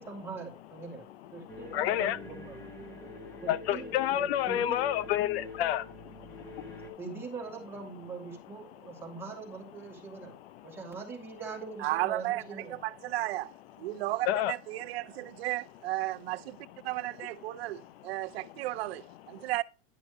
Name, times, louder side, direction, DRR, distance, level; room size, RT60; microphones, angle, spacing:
voice 1, 0.0-2.6 3.4-4.8 7.0-10.4 10.6-12.8, right 4 dB, 5° right, 2.0 m, -42 dB
sound 1, 1.5-6.9, left 2 dB, 10° left, 1.9 m, -45 dB
voice 2, 1.7-2.2 3.5-5.8 14.2-14.5, left 12 dB, 80° left, 0.7 m, -28 dB
voice 3, 11.8-13.5 13.8-16.6 16.8-19.6, right 17 dB, 80° right, 0.6 m, -34 dB
10.5 x 6.0 x 3.0 m
supercardioid pair, 170°, 31 cm